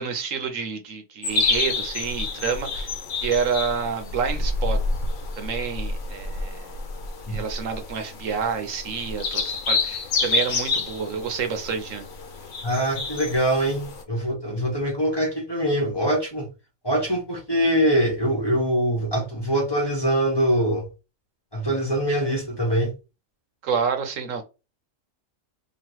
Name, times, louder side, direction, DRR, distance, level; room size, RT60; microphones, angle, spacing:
voice 1, 0.0-4.8 5.4-6.7 7.3-12.1 23.6-24.4, right 6 dB, 75° right, 1.1 m, -28 dB
sound 1, 1.2-14.0, left 3 dB, 70° left, 1.2 m, -28 dB
voice 2, 12.6-16.5 16.8-20.9 21.5-22.9, right 1 dB, 20° left, 0.9 m, -23 dB
3.1 x 2.6 x 4.5 m
omnidirectional pair, 1.4 m